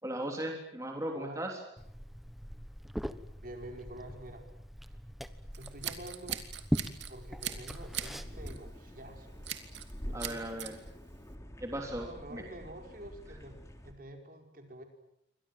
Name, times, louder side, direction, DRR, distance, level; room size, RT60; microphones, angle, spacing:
voice 1, 0.0-1.6 10.1-10.8 11.6-12.1 12.3-12.4, right 1 dB, 15° right, 1 dB, 3.5 m, -37 dB
voice 2, 1.0-1.4 3.4-4.4 4.9-5.0 5.5-6.4 7.1-9.6 10.1-10.8 12.0-13.5 13.8-14.8, right 1 dB, 45° right, 4 dB, 5.1 m, -48 dB
Liquid, 1.8-8.5, equal, ahead, 1.1 m, -40 dB
Scissors, 5.5-7.1 7.4-8.1 8.5-8.7 9.4-9.9 10.2-10.7, right 10 dB, 65° right, 2.8 m, -39 dB
sound 1, 7.8-13.9, equal, 15° left, 3.4 m, -47 dB
28.5 x 25.0 x 7.6 m, 0.79 s
head